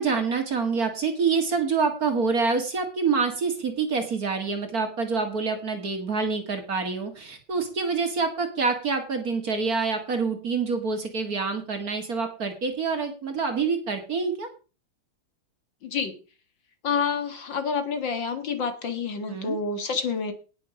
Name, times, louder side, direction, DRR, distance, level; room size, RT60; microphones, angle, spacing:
voice 1, 0.0-14.5 19.3-19.6, right 4 dB, 45° right, 6 dB, 2.3 m, -26 dB
voice 2, 15.8-16.1 16.8-20.3, left 5 dB, 60° left, 8 dB, 2.2 m, -28 dB
18.5 x 6.8 x 4.8 m, 0.35 s
omnidirectional pair, 2.4 m